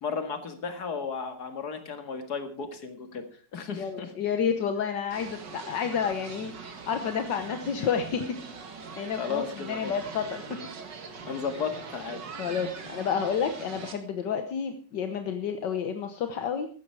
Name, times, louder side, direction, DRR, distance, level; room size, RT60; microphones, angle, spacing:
voice 1, 0.0-4.1 9.2-9.9 11.2-12.2, left 5 dB, 60° left, 7 dB, 2.5 m, -34 dB
voice 2, 3.8-8.4 9.0-10.5 12.4-16.7, left 7 dB, 80° left, 7 dB, 1.8 m, -30 dB
sound 1, 5.1-13.9, right 5 dB, 80° right, 2.4 m, -42 dB
15.0 x 12.5 x 4.8 m, 0.42 s
omnidirectional pair, 1.9 m